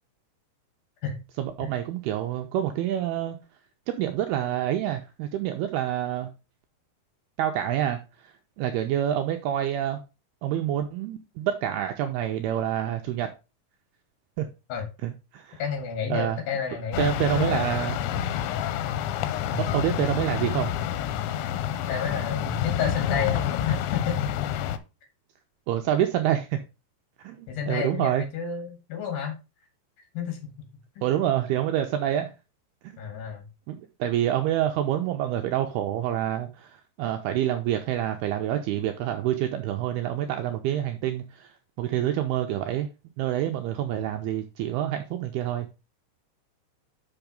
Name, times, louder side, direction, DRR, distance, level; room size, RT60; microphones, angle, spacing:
voice 1, 1.4-3.4 3.9-6.3 7.4-10.0 10.4-13.3 14.4-14.5 15.0-15.6 16.1-16.4 17.0-18.0 19.7-20.7 25.7-26.6 27.2-28.2 31.0-32.3 32.8-33.0 33.7-41.5 41.8-42.9 43.2-45.7, right 11 dB, 90° right, 2.3 m, -27 dB
voice 2, 15.6-17.7 19.4-19.7 21.9-24.3 27.5-29.4 30.1-30.7 31.0-31.1 33.0-33.5, left 7 dB, 60° left, 3.3 m, -31 dB
sound 1, 16.9-24.8, left 10 dB, 85° left, 3.0 m, -28 dB
6.2 x 5.9 x 5.2 m
omnidirectional pair, 5.2 m